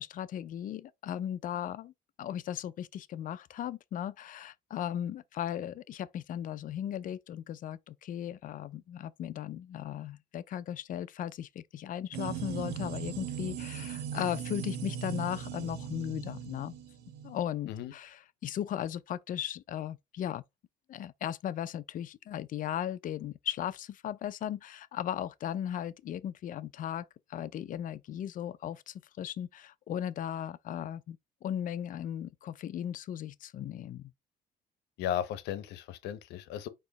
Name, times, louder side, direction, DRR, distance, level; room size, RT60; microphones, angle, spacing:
voice 1, 0.0-1.9 2.2-16.7 17.2-20.4 20.9-34.1, left 10 dB, 55° left, 0.5 m, -37 dB
sound 1, 12.1-17.4, right 8 dB, 70° right, 0.9 m, -39 dB
voice 2, 35.0-36.7, left 10 dB, 85° left, 0.8 m, -35 dB
4.3 x 3.0 x 3.9 m
cardioid pair, 110°, 17 cm